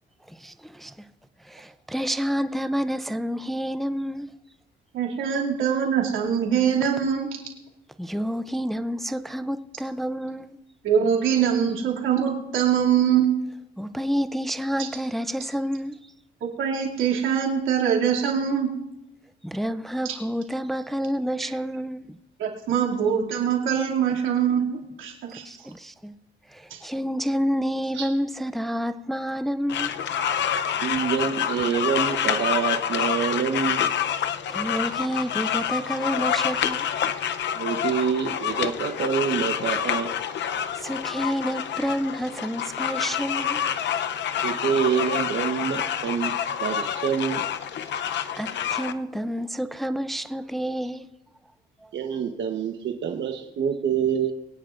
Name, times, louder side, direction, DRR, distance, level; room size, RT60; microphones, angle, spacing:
voice 1, 0.3-1.1 1.4-4.3 8.0-10.6 13.8-16.0 19.4-22.1 25.4-26.1 26.5-30.0 34.5-36.9 40.7-43.6 48.4-51.1 51.8-51.9, equal, ahead, 0.5 m, -29 dB
voice 2, 4.9-7.3 10.8-13.3 16.4-18.7 20.0-20.1 22.4-25.4 26.7-26.8, right 8 dB, 85° right, 2.6 m, -23 dB
sound 1, 29.7-48.9, left 9 dB, 65° left, 0.7 m, -27 dB
voice 3, 30.8-33.9 37.5-40.1 44.4-46.3 46.6-47.4 51.9-54.3, right 7 dB, 65° right, 1.1 m, -26 dB
22.0 x 9.9 x 2.6 m
cardioid pair, 90°, 20 cm